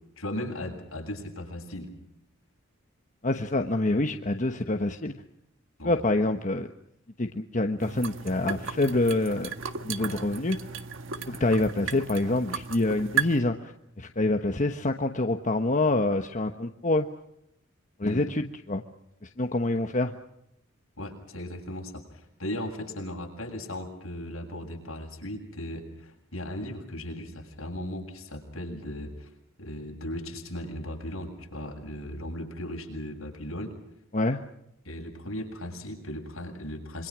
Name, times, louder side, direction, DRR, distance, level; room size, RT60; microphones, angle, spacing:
voice 1, 0.2-1.9 5.8-5.9 18.0-18.2 21.0-29.3 29.6-33.7 34.8-37.1, left 1 dB, 70° left, 2 dB, 7.9 m, -37 dB
voice 2, 3.2-5.2 5.8-6.7 7.2-9.5 9.8-10.6 11.3-13.7 14.0-17.1 18.0-18.8 19.2-20.1 34.1-34.4, left 2 dB, 35° left, 5 dB, 1.2 m, -26 dB
sound 1, 7.8-13.4, right 7 dB, 65° right, 1.6 m, -35 dB
26.5 x 24.5 x 6.2 m, 0.80 s
head